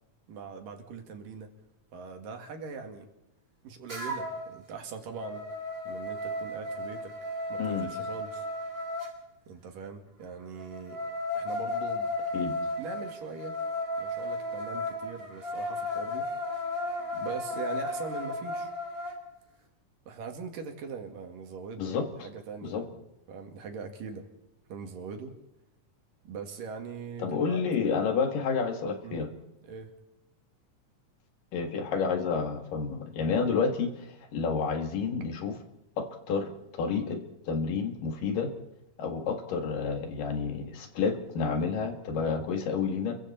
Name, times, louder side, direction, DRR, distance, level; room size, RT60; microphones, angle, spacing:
voice 1, 0.3-1.5 1.9-3.1 3.6-5.4 5.9-7.1 7.5-8.5 9.5-11.0 11.3-12.1 12.8-13.6 14.0-16.3 17.1-18.7 20.1-22.0 22.2-23.0 23.3-24.3 24.7-25.3 26.2-28.1 29.0-29.2 29.6-29.9, right 5 dB, 85° right, 4 dB, 3.9 m, -41 dB
sound 1, 3.9-4.5 4.9-9.1 10.6-19.2, left 2 dB, 15° right, 3.9 m, -34 dB
voice 2, 7.6-7.9 12.3-12.5 21.8-22.1 22.6-22.8 27.2-29.3 31.5-35.6 36.0-37.2 37.5-38.5 39.0-43.1, left 5 dB, 85° left, 5 dB, 3.6 m, -30 dB
30.0 x 23.0 x 4.3 m, 0.89 s
omnidirectional pair, 3.8 m